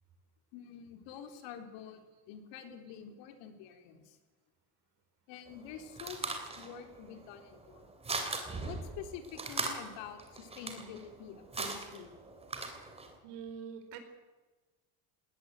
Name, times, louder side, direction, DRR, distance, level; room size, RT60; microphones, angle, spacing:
voice 1, 0.5-4.2 5.3-7.9 8.6-12.2, left 8 dB, 80° left, 6 dB, 3.9 m, -47 dB
sound 1, 5.5-13.1, right 3 dB, 15° right, 3.0 m, -40 dB
voice 2, 13.2-14.0, right 7 dB, 70° right, 7 dB, 4.5 m, -44 dB
20.5 x 19.0 x 8.2 m, 1.3 s
cardioid pair, 175°, 42 cm